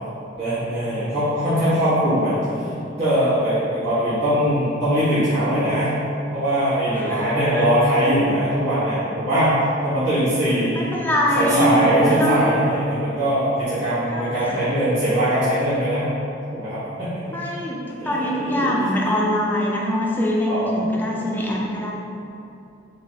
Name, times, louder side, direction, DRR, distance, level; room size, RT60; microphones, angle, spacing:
voice 1, 0.3-2.7 3.0-6.0 6.3-9.5 9.8-10.9 11.3-16.1 16.5-17.2 18.0-18.8 20.5-20.9, equal, 70° right, -15 dB, 1.2 m, -21 dB
voice 2, 6.9-7.7 10.7-12.4 14.1-14.6 17.3-21.9, equal, 10° left, -3 dB, 0.4 m, -23 dB
3.6 x 3.3 x 2.7 m, 2.7 s
head